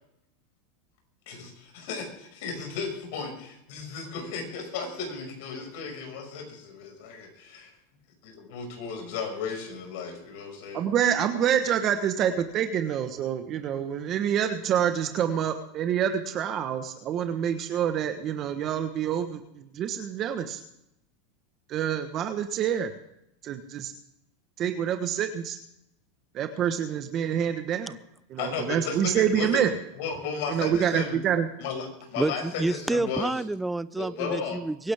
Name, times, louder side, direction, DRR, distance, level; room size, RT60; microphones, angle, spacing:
voice 1, 1.3-7.7 8.2-10.8 28.4-29.6 30.0-31.2 31.6-33.3 34.0-34.6, left 5 dB, 65° left, 4 dB, 5.7 m, -34 dB
voice 2, 10.7-20.6 21.7-22.9 23.4-23.9 24.6-25.6 26.3-28.0 28.3-29.8 30.5-31.5, right 9 dB, 35° right, 8 dB, 1.2 m, -27 dB
voice 3, 32.2-34.9, right 2 dB, 5° right, 16 dB, 0.5 m, -28 dB
23.5 x 11.0 x 3.6 m, 0.79 s
supercardioid pair, 135°, 0 cm